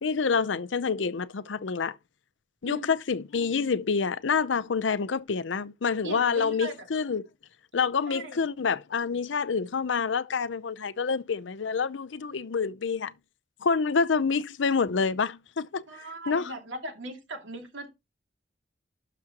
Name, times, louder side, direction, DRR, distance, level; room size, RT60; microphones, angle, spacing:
voice 1, 0.0-2.0 2.6-7.3 7.7-13.1 13.6-15.8 16.3-16.5, left 5 dB, 90° left, 0.6 m, -27 dB
voice 2, 6.0-6.9 8.1-8.5 15.9-17.9, right 2 dB, 85° right, 2.3 m, -39 dB
12.0 x 5.1 x 2.9 m
head